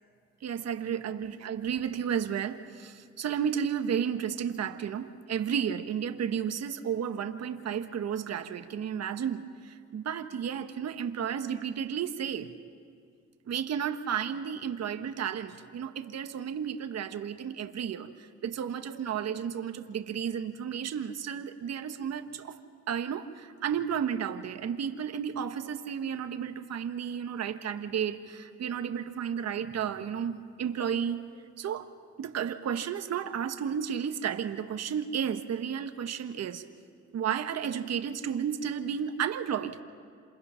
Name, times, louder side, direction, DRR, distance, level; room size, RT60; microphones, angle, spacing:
voice 1, 0.4-12.5 13.5-18.1 18.4-22.6 22.9-31.2 31.6-31.9 32.2-36.6 37.1-39.8, right 8 dB, 60° right, 8 dB, 1.3 m, -32 dB
28.0 x 27.0 x 5.8 m, 2.2 s
cardioid pair, 90°, 30 cm